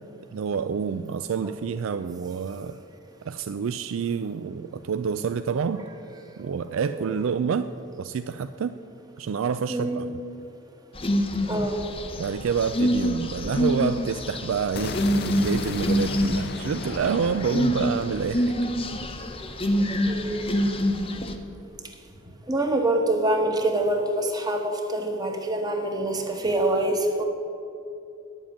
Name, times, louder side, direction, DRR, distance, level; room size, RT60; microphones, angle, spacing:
voice 1, 0.3-2.8 3.3-5.8 6.4-7.7 8.0-8.7 9.2-10.1 12.2-15.0 15.2-18.5, right 6 dB, 70° right, 10 dB, 0.4 m, -28 dB
voice 2, 6.7-7.1 9.7-10.1 11.5-11.8 20.0-20.6 22.5-27.2, right 1 dB, 20° right, 4 dB, 1.1 m, -26 dB
sound 1, 10.9-21.3, equal, 25° left, 0.8 m, -26 dB
sound 2, 14.8-20.8, left 4 dB, 50° left, 0.4 m, -36 dB
10.0 x 7.4 x 8.9 m, 2.8 s
head